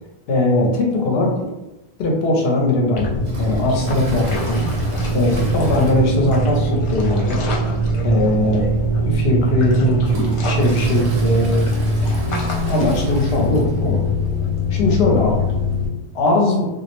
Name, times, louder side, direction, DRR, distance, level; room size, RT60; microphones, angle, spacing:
voice 1, 0.3-1.5 2.0-4.6 5.1-7.4 8.0-8.7 9.0-11.7 12.6-14.0 14.7-15.5 16.1-16.7, left 2 dB, 75° left, 0 dB, 0.8 m, -19 dB
sound 1, 2.9-15.9, equal, 55° left, 0.3 m, -21 dB
Toilet flush, 3.2-6.7 6.9-7.0 7.5-7.6 8.4-8.5 9.1-14.0 14.3-14.4 14.6-14.7 15.7-15.8, right 2 dB, 85° right, 0.9 m, -37 dB
2.3 x 2.0 x 2.9 m, 1.0 s
omnidirectional pair, 1.1 m